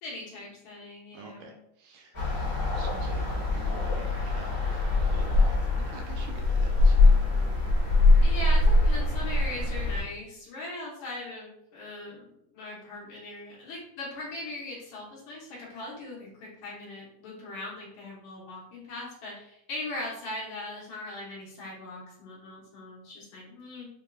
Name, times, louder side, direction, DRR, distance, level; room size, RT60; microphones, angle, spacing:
voice 1, 0.0-1.6 8.2-23.9, left 2 dB, 75° left, -6 dB, 2.4 m, -40 dB
voice 2, 1.1-2.2 2.6-7.6, right 4 dB, 75° right, 2 dB, 1.9 m, -48 dB
sound 1, 2.1-10.0, left 2 dB, 40° left, 0.7 m, -23 dB
6.6 x 2.6 x 2.2 m, 0.78 s
omnidirectional pair, 3.6 m